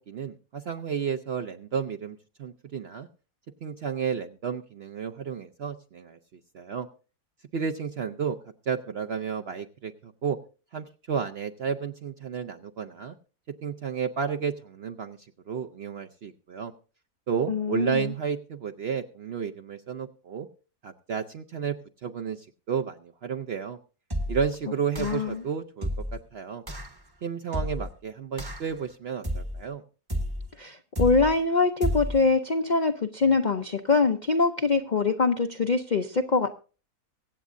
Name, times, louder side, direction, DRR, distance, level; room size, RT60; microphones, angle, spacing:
voice 1, 0.1-3.1 3.6-6.2 6.5-6.9 7.5-8.4 8.7-10.4 10.7-13.1 13.6-15.2 15.5-16.7 17.3-20.5 20.8-21.8 22.0-23.8 24.3-26.6 27.2-29.8, right 6 dB, 60° right, 6 dB, 0.7 m, -32 dB
voice 2, 17.5-18.1 25.0-25.4 30.6-36.5, left 4 dB, 55° left, 6 dB, 0.5 m, -24 dB
sound 1, 24.1-24.5 24.9-25.3 25.8-26.2 26.7-26.9 27.5-27.9 28.4-28.8 29.2-29.7 30.1-30.5 30.9-31.4 31.8-32.2, equal, 20° right, 0.8 m, -31 dB
23.5 x 8.3 x 2.6 m, 0.37 s
omnidirectional pair, 1.7 m